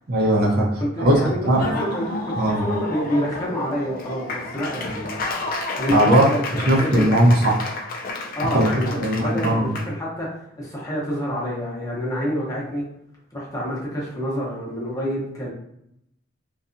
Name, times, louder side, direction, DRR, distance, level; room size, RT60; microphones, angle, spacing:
voice 1, 0.1-1.6 2.4-2.6 5.9-6.3 6.7-7.5 8.5-8.7 9.0-9.7, right 1 dB, 50° right, -3 dB, 0.6 m, -18 dB
voice 2, 0.8-1.4 1.6-5.2 5.8-7.2 8.3-10.3 10.5-12.8 13.3-15.5, equal, 15° left, -5 dB, 0.8 m, -27 dB
Laughter / Applause, 1.4-9.9, left 2 dB, 45° left, 0.3 m, -31 dB
2.7 x 2.3 x 2.5 m, 0.78 s
head